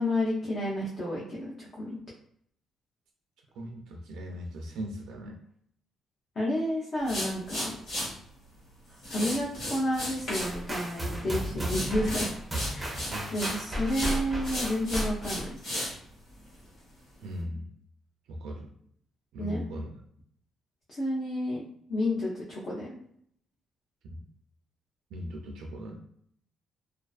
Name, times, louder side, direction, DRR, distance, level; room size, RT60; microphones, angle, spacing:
voice 1, 0.0-2.0 6.4-7.8 9.1-12.3 12.7-15.5 19.4-19.6 20.9-21.6 21.9-23.0, left 1 dB, 40° left, -6 dB, 0.5 m, -31 dB
voice 2, 3.6-5.4 13.1-13.3 17.2-17.7 18.3-18.7 19.3-19.9 24.1-24.2 25.1-26.0, equal, 80° right, 1 dB, 0.3 m, -38 dB
brush hair, 7.0-8.1 9.0-10.5 10.8-11.2 11.6-13.6 13.9-15.9, left 1 dB, 70° left, 1.4 m, -34 dB
sound 1, 10.4-15.5, equal, 10° right, 0.6 m, -34 dB
2.3 x 2.3 x 2.3 m, 0.67 s
cardioid pair, 150°, 0 cm